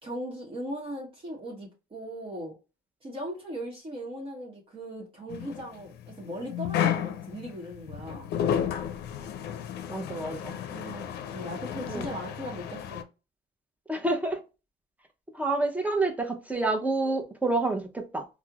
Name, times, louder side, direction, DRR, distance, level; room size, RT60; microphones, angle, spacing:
voice 1, 0.0-2.6 3.0-8.3 10.7-13.1, equal, 30° right, 1.1 m, -38 dB
sound 1, 5.3-13.0, left 9 dB, 75° left, 0.5 m, -32 dB
voice 2, 9.9-10.6 11.9-12.1 13.9-14.4 15.3-18.3, right 2 dB, 10° right, 0.6 m, -28 dB
4.3 x 2.1 x 2.3 m
cardioid pair, 110°, 17 cm